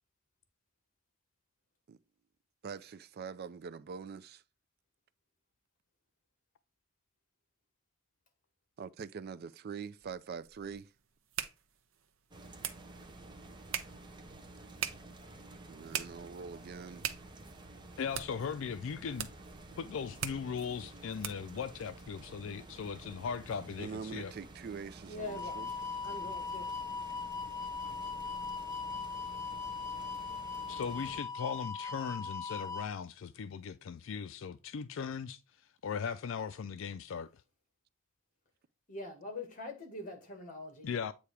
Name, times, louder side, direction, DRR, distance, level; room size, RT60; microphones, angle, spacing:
voice 1, 2.6-4.4 8.8-10.9 15.7-17.0 23.8-25.7, right 6 dB, 50° right, 0.3 m, -44 dB
sound 1, 10.0-21.6, right 9 dB, 70° right, 0.7 m, -44 dB
sound 2, 12.3-31.2, right 2 dB, 20° right, 0.8 m, -51 dB
voice 2, 18.0-19.3 19.8-24.3 30.7-35.4 35.8-37.3 40.8-41.1, left 6 dB, 65° left, 0.4 m, -38 dB
voice 3, 25.1-25.6 26.0-26.7 38.9-40.9, left 2 dB, 40° left, 1.8 m, -43 dB
sound 3, 25.3-32.9, left 5 dB, 15° left, 0.6 m, -39 dB
8.4 x 2.8 x 4.6 m
head